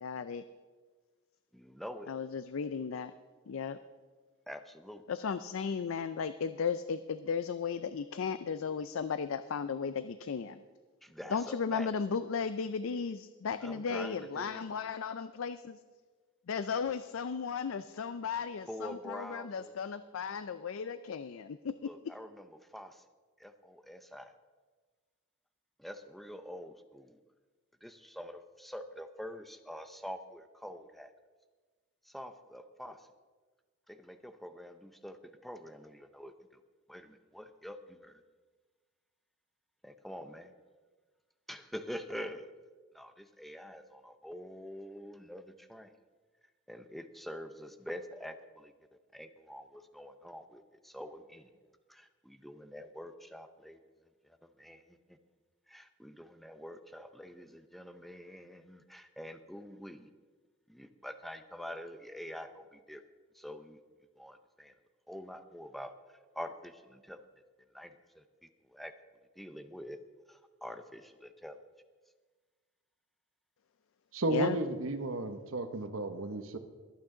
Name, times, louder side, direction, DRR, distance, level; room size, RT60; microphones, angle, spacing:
voice 1, 0.0-0.4 2.1-3.1 3.5-3.8 5.1-10.6 11.3-15.8 16.5-21.9 74.3-74.6, left 6 dB, 75° left, 12 dB, 0.4 m, -35 dB
voice 2, 1.5-2.1 4.5-5.0 11.0-11.9 13.6-14.7 18.7-19.8 21.8-23.0 23.4-24.3 25.8-27.2 27.8-31.1 32.0-33.1 33.9-35.2 35.4-36.6 36.9-38.2 39.8-40.5 41.5-42.5 42.9-45.9 46.7-48.7 49.1-51.5 51.9-53.8 54.2-55.2 55.7-60.1 60.7-63.0 63.3-63.8 64.2-64.7 65.1-67.2 67.7-68.9 69.4-70.0 70.3-71.6, equal, ahead, 8 dB, 0.7 m, -46 dB
voice 3, 74.1-76.6, right 2 dB, 75° right, 8 dB, 1.0 m, -33 dB
21.5 x 8.7 x 3.8 m, 1.4 s
head